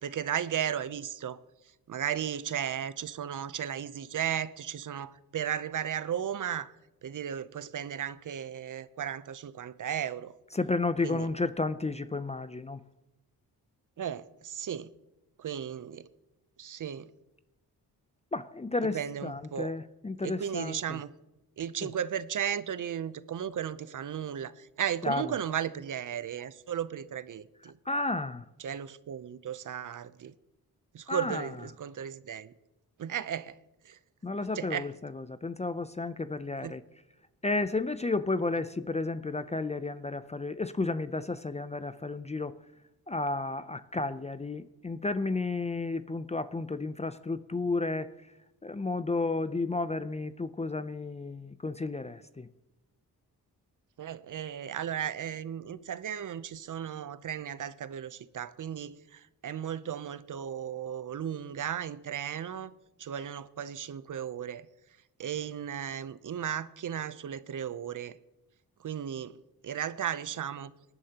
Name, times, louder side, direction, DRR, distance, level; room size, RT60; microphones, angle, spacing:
voice 1, 0.0-1.4 1.9-6.7 7.0-10.3 11.0-11.3 14.0-14.9 15.4-16.1 16.6-17.1 18.9-19.7 20.2-21.1 21.6-27.8 28.6-30.3 30.9-32.5 33.0-33.6 33.8-34.0 34.5-34.9 36.6-36.7 54.0-62.7 63.0-64.7 65.2-68.2 68.8-69.4 69.6-70.7, right 9 dB, 50° right, 0.6 m, -35 dB
voice 2, 10.5-12.8 18.3-21.0 21.8-21.9 25.0-25.3 27.6-28.4 31.1-31.7 34.2-36.8 37.4-42.5 43.1-48.1 48.6-52.5, left 3 dB, 20° left, 0.4 m, -32 dB
19.0 x 11.0 x 2.9 m
cardioid pair, 85°, 39 cm